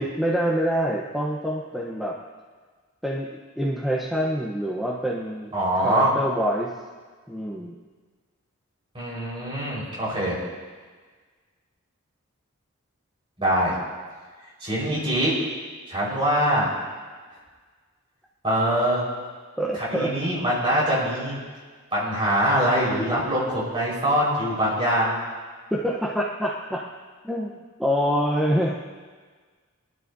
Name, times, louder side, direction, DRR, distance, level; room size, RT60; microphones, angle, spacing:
voice 1, 0.0-2.2 3.0-3.3 3.6-5.5 5.8-6.7 7.3-7.7 19.6-20.1 25.7-26.8 27.2-28.8, equal, ahead, -4 dB, 0.9 m, -26 dB
voice 2, 5.5-6.1 8.9-10.4 13.4-13.7 14.6-15.3 15.9-16.7 18.4-19.0 19.7-21.4 21.9-25.2, equal, 25° right, -6 dB, 4.7 m, -23 dB
24.0 x 12.0 x 2.7 m, 1.5 s
head